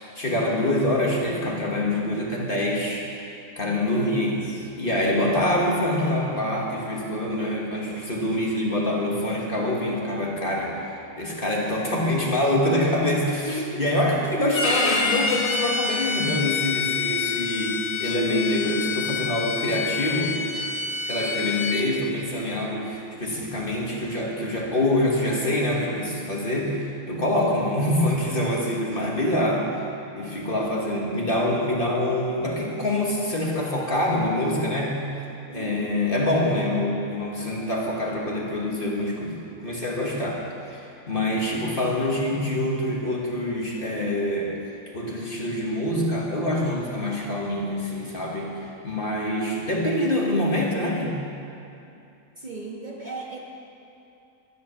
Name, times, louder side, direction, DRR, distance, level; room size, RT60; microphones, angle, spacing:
voice 1, 0.1-3.1 3.5-4.3 4.8-20.4 21.1-29.8 30.2-35.0 35.5-40.4 40.7-44.5 44.9-51.2, left 1 dB, 35° left, -2 dB, 1.6 m, -25 dB
voice 2, 3.9-5.0 13.4-13.8 35.5-35.9 52.4-53.4, equal, 30° right, -3 dB, 1.5 m, -35 dB
Bowed string instrument, 14.5-21.8, left 5 dB, 80° left, 2.0 m, -27 dB
13.0 x 10.5 x 7.1 m, 2.7 s
omnidirectional pair, 1.6 m